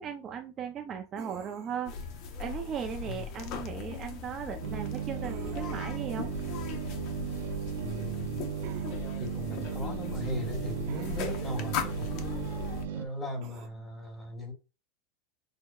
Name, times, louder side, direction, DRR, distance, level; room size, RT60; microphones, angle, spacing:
voice 1, 0.0-1.9 2.4-6.3, right 7 dB, 30° right, 0.4 m, -37 dB
sound 1, 1.2-1.9 5.2-6.0 8.6-9.0 10.9-11.5 13.4-13.7, right 10 dB, 55° right, 0.8 m, -48 dB
sound 2, 1.8-12.8, left 6 dB, 50° left, 0.7 m, -38 dB
sound 3, 4.6-13.1, right 10 dB, 85° right, 0.6 m, -36 dB
voice 2, 7.8-8.4 9.2-12.5 12.9-14.5, equal, 10° left, 1.4 m, -38 dB
6.3 x 2.1 x 2.3 m
supercardioid pair, 135°, 0 cm